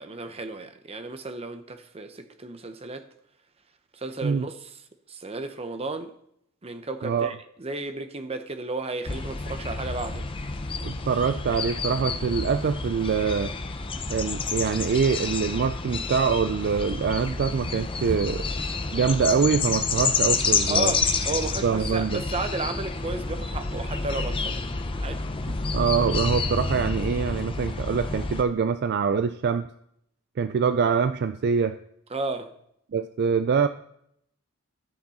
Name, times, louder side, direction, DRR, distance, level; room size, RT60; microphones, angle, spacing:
voice 1, 0.0-3.1 3.9-4.7 5.1-6.2 6.6-10.3 20.7-24.6 25.0-25.2 32.1-32.5, right 3 dB, 30° right, 0.7 m, -33 dB
voice 2, 7.0-7.3 10.8-13.5 14.1-18.4 18.9-20.9 21.6-22.2 25.7-29.7 30.4-31.8 32.9-33.7, right 6 dB, 50° right, 0.3 m, -24 dB
sound 1, 9.1-28.4, left 4 dB, 25° left, 0.6 m, -29 dB
13.0 x 6.0 x 4.2 m
head